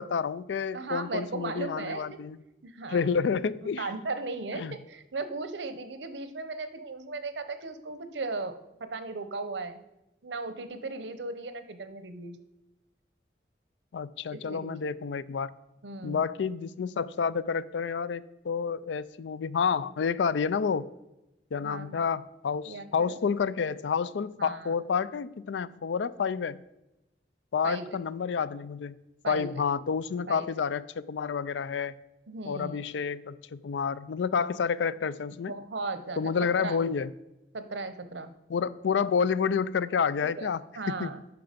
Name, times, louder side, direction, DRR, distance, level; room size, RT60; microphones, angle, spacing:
voice 1, 0.0-2.4 2.9-3.9 4.5-4.7 13.9-15.5 16.0-20.9 21.5-26.6 27.5-28.9 29.3-31.9 32.5-35.5 36.2-37.1 38.5-40.6 40.9-41.1, left 6 dB, 85° left, 0.4 m, -29 dB
voice 2, 0.7-2.2 2.6-3.1 3.6-8.5 8.8-9.8 10.2-12.4 14.3-14.8 15.8-16.3 21.6-22.0 22.7-23.2 24.4-24.7 27.6-28.0 29.2-29.5 30.3-30.5 32.3-32.8 35.5-36.8 37.5-38.3 40.2-41.2, right 3 dB, 85° right, 0.8 m, -37 dB
9.4 x 5.9 x 5.1 m
head